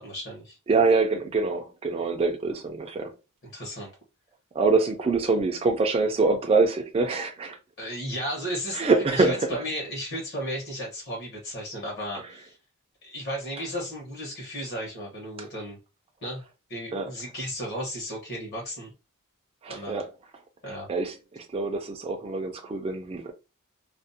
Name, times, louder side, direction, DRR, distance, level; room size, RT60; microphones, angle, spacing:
voice 1, 0.0-0.6 3.5-3.9 7.8-12.6 13.0-15.8 16.2-16.4 16.7-18.9 19.7-20.0 20.6-20.9, equal, 50° left, 1.0 m, -34 dB
voice 2, 0.7-3.1 4.5-7.6 8.7-9.6 16.9-17.1 19.6-20.1 20.9-23.3, right 3 dB, 25° right, 0.3 m, -25 dB
2.5 x 2.0 x 2.6 m
head